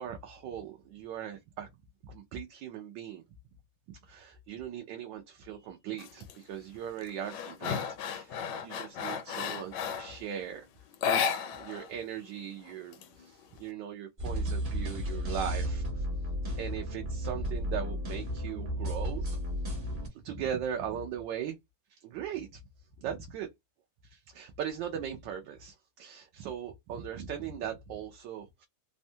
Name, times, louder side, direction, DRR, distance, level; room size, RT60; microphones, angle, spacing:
voice 1, 0.0-1.7 2.0-3.2 4.0-10.7 11.6-16.0 16.6-19.4 20.2-21.6 21.9-22.6 23.0-23.5 24.1-28.7, right 8 dB, 80° right, 1.3 m, -39 dB
sound 1, 6.0-6.3 6.8-10.2 10.9-11.9 12.2-12.3 12.6-13.6, left 7 dB, 75° left, 1.2 m, -33 dB
sound 2, 14.2-20.1, equal, 35° right, 0.9 m, -33 dB
3.5 x 2.2 x 2.6 m
omnidirectional pair, 2.0 m